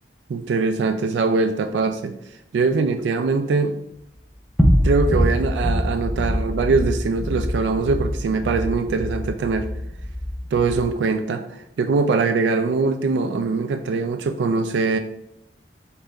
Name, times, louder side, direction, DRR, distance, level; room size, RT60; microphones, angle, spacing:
voice 1, 0.3-2.2 2.5-3.8 4.8-9.7 10.5-11.4 11.8-15.0, right 4 dB, 80° right, 8 dB, 0.3 m, -22 dB
sound 1, 4.6-10.9, equal, ahead, 0.6 m, -24 dB
5.1 x 4.2 x 2.3 m, 0.80 s
head